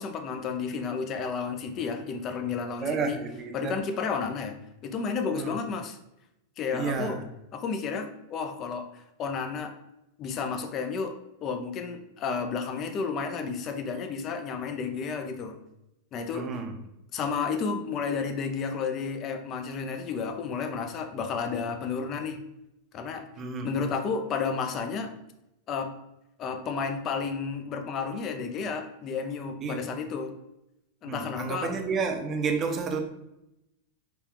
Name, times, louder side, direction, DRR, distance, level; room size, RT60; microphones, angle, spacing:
voice 1, 0.0-3.2 3.5-4.5 4.8-6.0 6.6-7.2 7.5-8.9 9.2-9.7 10.2-11.1 11.4-15.6 16.1-16.5 17.1-22.4 22.9-23.2 23.6-25.1 25.7-25.9 26.4-30.3 31.0-31.7, left 5 dB, 30° left, 7 dB, 0.5 m, -31 dB
voice 2, 2.8-3.8 5.3-5.6 6.7-7.2 16.3-16.7 23.4-23.7 29.6-29.9 31.0-33.0, right 5 dB, 25° right, 4 dB, 0.7 m, -31 dB
5.8 x 2.3 x 3.6 m, 0.88 s
supercardioid pair, 145°, 0 cm